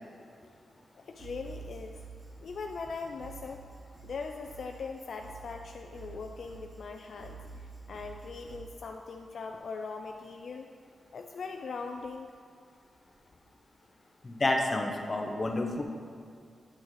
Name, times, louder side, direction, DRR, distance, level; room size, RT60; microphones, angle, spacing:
voice 1, 0.9-2.0 2.4-3.6 4.0-7.4 7.9-10.7 11.1-12.3, left 4 dB, 70° left, 3 dB, 0.3 m, -40 dB
sound 1, 1.1-8.7, right 4 dB, 50° right, 1.9 m, -49 dB
voice 2, 14.2-15.8, left 2 dB, 35° left, 2 dB, 0.8 m, -29 dB
8.8 x 6.3 x 3.2 m, 2.3 s
cardioid pair, 80°, 0 cm